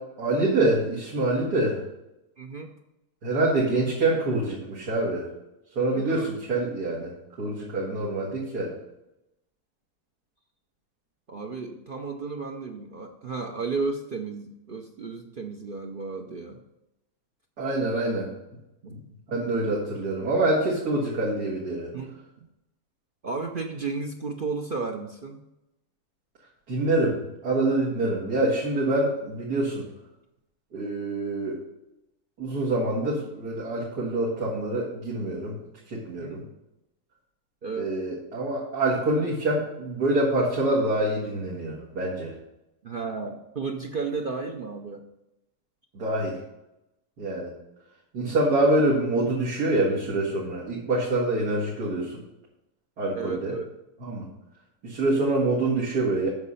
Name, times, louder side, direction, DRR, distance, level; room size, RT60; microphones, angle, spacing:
voice 1, 0.2-1.8 3.2-5.3 5.8-8.7 17.6-18.3 18.9-19.0 19.3-21.9 26.7-29.8 30.7-31.6 32.4-35.6 35.9-36.4 37.8-42.3 45.9-46.4 47.2-47.5 48.1-52.2 53.0-53.5 54.0-54.3 54.8-56.3, right 2 dB, 85° right, -6 dB, 2.4 m, -26 dB
voice 2, 2.4-2.7 5.9-6.3 11.3-16.6 18.8-18.9 21.9-22.2 23.2-25.4 36.2-36.5 37.6-37.9 42.8-45.1 48.1-48.3 53.1-53.7, right 4 dB, 55° right, 3 dB, 0.6 m, -33 dB
8.2 x 6.5 x 5.5 m, 0.92 s
omnidirectional pair, 1.7 m